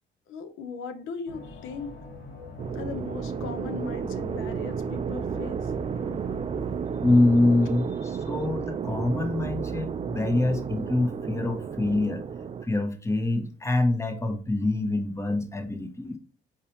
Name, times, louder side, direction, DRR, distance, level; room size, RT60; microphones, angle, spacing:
voice 1, 0.3-1.9 2.7-5.7 8.0-8.4, left 5 dB, 85° left, 0.6 m, -38 dB
sound 1, 1.3-6.8, left 3 dB, 65° left, 1.6 m, -44 dB
sound 2, 2.6-12.7, right 6 dB, 30° right, 0.4 m, -32 dB
voice 2, 7.0-12.2 12.6-16.2, left 2 dB, 15° left, 0.9 m, -25 dB
4.4 x 3.9 x 3.0 m
cardioid pair, 90°, 20 cm